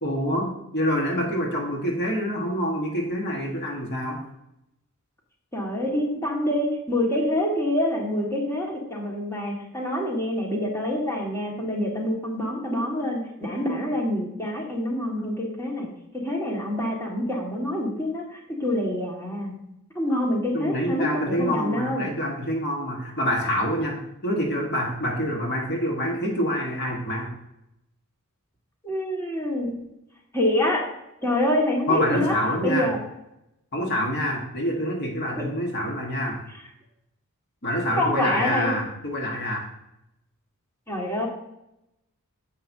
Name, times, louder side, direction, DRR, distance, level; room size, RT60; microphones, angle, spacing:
voice 1, 0.0-4.3 20.5-27.4 31.9-32.9 33.7-36.4 37.6-39.7, equal, 50° left, 0 dB, 1.4 m, -26 dB
voice 2, 5.5-19.6 20.0-22.1 28.8-29.8 30.3-30.8 31.2-32.4 32.6-33.0 35.3-35.5 38.0-38.7 40.9-41.3, left 1 dB, 15° left, -2 dB, 1.8 m, -26 dB
10.5 x 7.6 x 2.7 m, 0.86 s
head